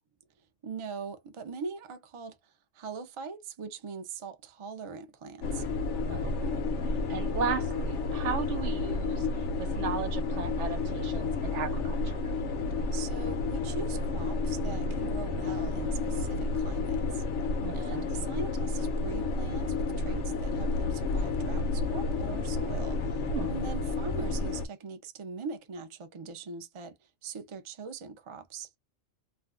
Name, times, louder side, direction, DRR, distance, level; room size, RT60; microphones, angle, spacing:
voice 1, 0.6-5.6 12.9-17.2 17.7-28.7, right 5 dB, 40° right, 0.4 m, -41 dB
sound 1, 5.4-24.7, left 3 dB, 85° left, 0.9 m, -31 dB
voice 2, 6.1-9.3 9.6-12.2 17.6-18.1 23.2-23.6, right 6 dB, 85° right, 1.1 m, -36 dB
2.5 x 2.2 x 3.5 m
omnidirectional pair, 1.2 m